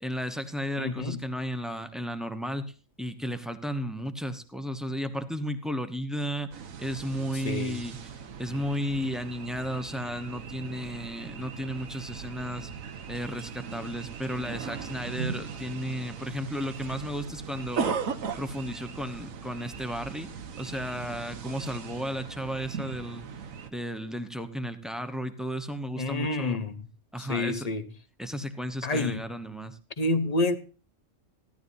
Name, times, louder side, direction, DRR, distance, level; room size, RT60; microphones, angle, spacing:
voice 1, 0.0-8.1 8.4-12.7 13.1-17.9 18.4-20.3 20.6-23.3 23.7-26.6 27.1-27.7 28.2-29.8, equal, ahead, 0.8 m, -34 dB
voice 2, 0.8-1.2 7.3-7.8 26.0-26.8 27.2-27.9 28.8-29.2 30.0-30.6, left 2 dB, 35° left, 0.8 m, -28 dB
sound 1, 6.5-23.7, right 6 dB, 80° right, 1.4 m, -38 dB
15.5 x 13.0 x 2.7 m
omnidirectional pair, 1.4 m